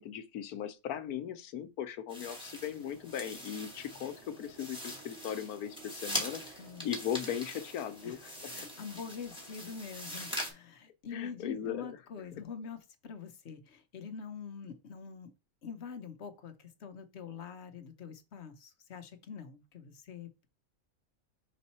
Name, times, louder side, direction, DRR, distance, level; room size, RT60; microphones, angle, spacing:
voice 1, 0.0-6.4 6.8-8.5 11.1-12.0, left 9 dB, 80° left, 1.3 m, -38 dB
sound 1, 2.1-10.5, equal, 5° right, 2.0 m, -42 dB
voice 2, 6.6-6.9 8.0-8.2 8.5-15.3 15.6-20.5, left 6 dB, 50° left, 1.0 m, -45 dB
5.3 x 4.2 x 4.2 m
omnidirectional pair, 1.6 m